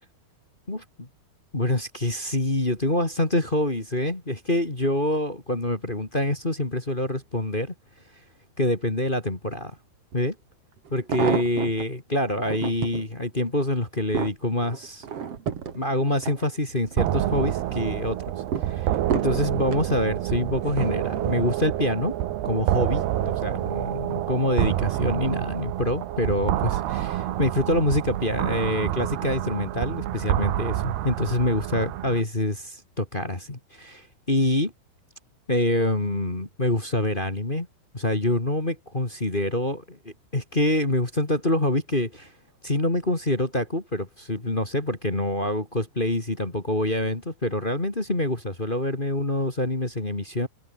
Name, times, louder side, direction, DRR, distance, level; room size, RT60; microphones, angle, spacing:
voice 1, 1.5-7.7 8.6-9.8 10.1-10.4 10.9-15.0 15.7-18.2 18.6-22.1 22.4-34.7 35.5-37.7 37.9-42.1 42.6-50.5, left 1 dB, 15° left, 2.0 m, -26 dB
sound 1, 10.1-10.2 10.8-11.9 12.4-13.0 13.6-17.0 17.4-17.9 18.5-19.9 20.6-21.0 21.3-21.4, right 7 dB, 45° right, 2.5 m, -31 dB
sound 2, 17.0-32.2, right 13 dB, 75° right, 3.5 m, -28 dB
omnidirectional pair, 4.8 m